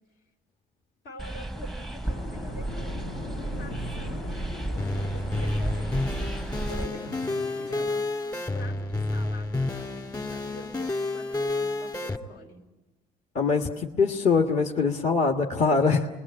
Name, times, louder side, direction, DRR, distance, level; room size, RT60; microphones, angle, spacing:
voice 1, 1.0-7.2 7.5-12.6, left 1 dB, 70° left, 3 dB, 4.1 m, -46 dB
sound 1, 1.2-6.9, right 2 dB, ahead, 0.8 m, -33 dB
sound 2, 2.0-7.8, left 2 dB, 90° left, 2.8 m, -40 dB
sound 3, 4.8-12.2, left 2 dB, 20° left, 2.3 m, -30 dB
voice 2, 13.3-16.1, left 4 dB, 45° left, 1 dB, 1.6 m, -23 dB
28.0 x 21.5 x 8.7 m, 1.1 s
cardioid pair, 110°, 17 cm